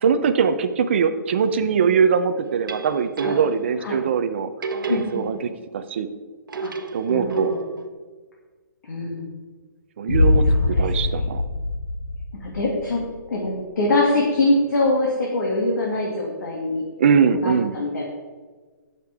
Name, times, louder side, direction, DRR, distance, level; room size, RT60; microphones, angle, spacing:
voice 1, 0.0-4.5 4.9-6.1 6.9-7.5 10.0-10.4 10.8-11.4 17.0-17.7, right 6 dB, 35° right, 8 dB, 0.6 m, -21 dB
sound 1, 2.4-3.8 4.6-5.7 6.5-7.9, right 4 dB, 85° right, 1.2 m, -31 dB
voice 2, 4.9-5.3 6.6-6.7 7.1-7.6 8.8-9.3 10.5-11.2 12.4-13.0 13.3-16.8 17.3-18.1, left 2 dB, 60° left, -2 dB, 2.3 m, -24 dB
Boom, 10.1-13.1, left 2 dB, 85° left, 1.4 m, -22 dB
18.5 x 6.7 x 3.5 m, 1.4 s
hypercardioid pair, 175°, 11 cm